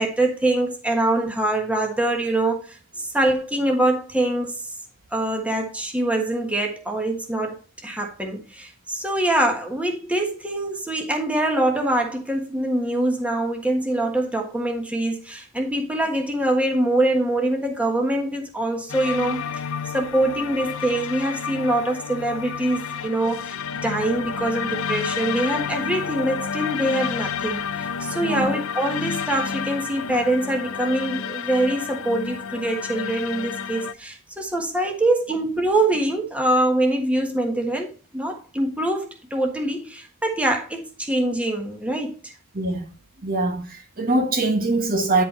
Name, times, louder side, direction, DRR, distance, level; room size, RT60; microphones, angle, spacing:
voice 1, 0.0-4.5 5.1-7.6 7.8-19.6 19.9-42.3, right 1 dB, 5° right, 1.4 m, -24 dB
sound 1, 18.9-33.9, left 6 dB, 65° left, 0.6 m, -30 dB
voice 2, 42.5-42.9 43.2-45.2, right 2 dB, 40° right, 1.5 m, -23 dB
10.0 x 5.4 x 4.3 m
head